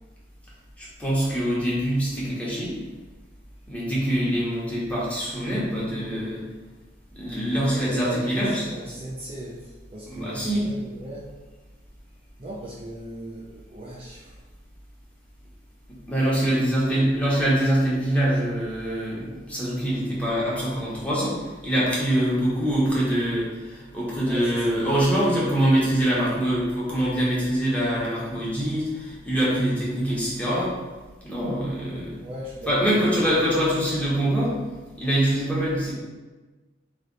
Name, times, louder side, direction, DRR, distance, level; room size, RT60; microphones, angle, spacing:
voice 1, 0.8-2.7 3.7-6.4 7.2-8.7 10.1-10.7 16.1-30.7 31.2-32.2 32.7-34.6 35.0-35.9, right 1 dB, 5° left, -7 dB, 1.3 m, -24 dB
voice 2, 7.7-11.3 12.4-14.4 16.4-16.5 16.8-17.1 22.1-22.4 24.3-24.8 32.2-33.1, right 1 dB, 30° right, -6 dB, 0.6 m, -38 dB
3.9 x 3.4 x 4.0 m, 1.2 s
head